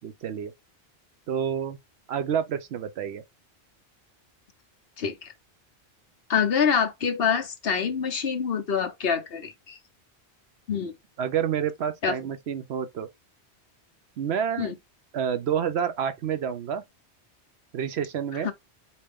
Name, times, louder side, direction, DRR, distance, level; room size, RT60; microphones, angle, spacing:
voice 1, 0.0-0.5 1.3-1.8 2.1-3.2 11.2-13.1 14.2-14.7 15.1-16.8 17.7-18.5, right 8 dB, 75° right, 0.9 m, -28 dB
voice 2, 5.0-5.3 6.3-9.8 10.7-10.9 12.0-12.2 14.6-14.7 18.4-18.5, left 6 dB, 60° left, 1.1 m, -26 dB
4.3 x 2.9 x 3.5 m
omnidirectional pair, 1.1 m